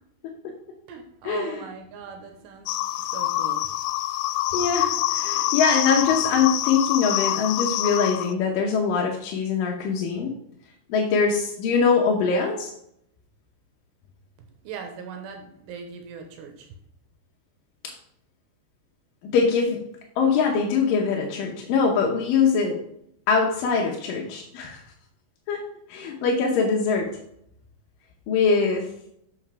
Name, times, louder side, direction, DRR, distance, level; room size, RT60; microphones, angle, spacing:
voice 1, 0.9-3.7 14.4-16.8, right 6 dB, 80° right, 4 dB, 2.9 m, -40 dB
sound 1, 2.7-8.3, left 14 dB, 90° left, 2.8 m, -26 dB
voice 2, 4.5-10.4 10.9-12.7 19.3-19.8 20.2-22.8 23.3-24.8 25.5-25.6 25.9-27.1 28.3-28.9, left 5 dB, 75° left, 0 dB, 2.1 m, -23 dB
7.1 x 6.4 x 4.6 m, 0.75 s
omnidirectional pair, 5.0 m